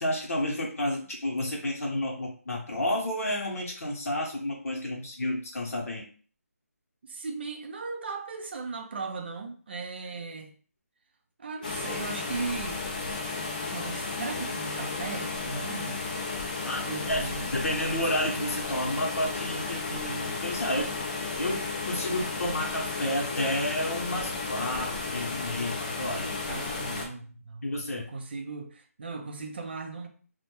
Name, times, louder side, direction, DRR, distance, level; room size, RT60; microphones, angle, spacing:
voice 1, 0.0-6.1 16.6-20.9 21.4-26.4 27.6-28.0, left 1 dB, 65° left, 0.7 m, -31 dB
voice 2, 7.0-10.5 11.4-12.8 13.7-16.0 16.9-17.5 26.5-30.1, right 4 dB, 40° right, 0.4 m, -37 dB
sound 1, 11.6-27.1, left 3 dB, 30° left, 0.4 m, -33 dB
2.1 x 2.1 x 2.9 m
figure-of-eight pair, 170°, 9 cm